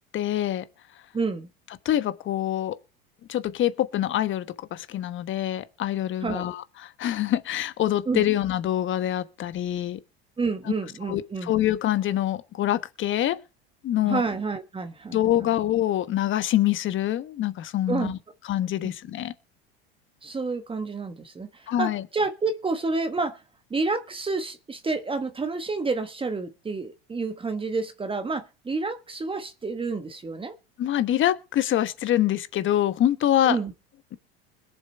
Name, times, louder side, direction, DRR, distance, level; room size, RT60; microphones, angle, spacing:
voice 1, 0.1-0.6 1.8-2.8 3.3-10.0 10.7-10.8 11.1-13.4 13.8-14.2 15.1-18.2 18.4-19.3 21.7-22.0 30.8-33.6, left 12 dB, 40° left, 1.2 m, -25 dB
voice 2, 1.1-1.5 6.2-6.5 8.1-8.3 10.4-11.5 14.0-15.5 17.9-18.1 18.8-18.9 20.2-23.4 23.7-30.5 33.5-33.7, right 4 dB, 15° right, 1.3 m, -29 dB
21.0 x 7.3 x 4.4 m
supercardioid pair, 95°, 30 cm